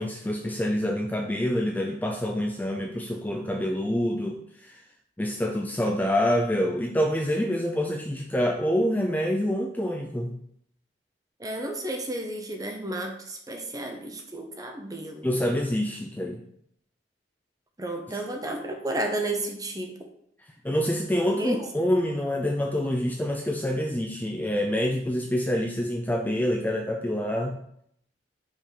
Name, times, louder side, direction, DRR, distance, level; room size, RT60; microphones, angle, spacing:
voice 1, 0.0-4.8 5.2-10.4 15.2-16.4 18.1-18.2 20.6-27.6, equal, 10° left, 1 dB, 0.4 m, -26 dB
voice 2, 11.4-15.3 17.8-20.1 21.4-21.6, right 1 dB, 20° right, 3 dB, 0.7 m, -32 dB
5.3 x 3.8 x 4.9 m, 0.70 s
head